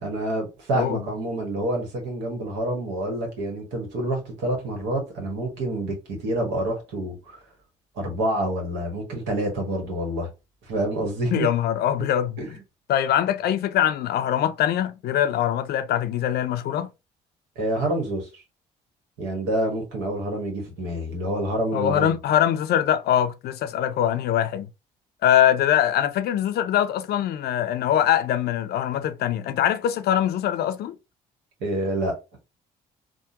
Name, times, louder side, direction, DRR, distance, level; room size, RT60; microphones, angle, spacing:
voice 1, 0.0-7.4 7.9-10.3 10.7-11.5 12.0-12.1 12.4-12.5 17.6-18.4 19.2-22.1 31.6-32.1, right 1 dB, 75° right, 1.3 m, -27 dB
voice 2, 11.3-12.4 12.9-16.9 21.7-24.7 25.2-30.9, left 10 dB, 60° left, 0.4 m, -23 dB
3.6 x 2.2 x 2.7 m
hypercardioid pair, 55°, 18 cm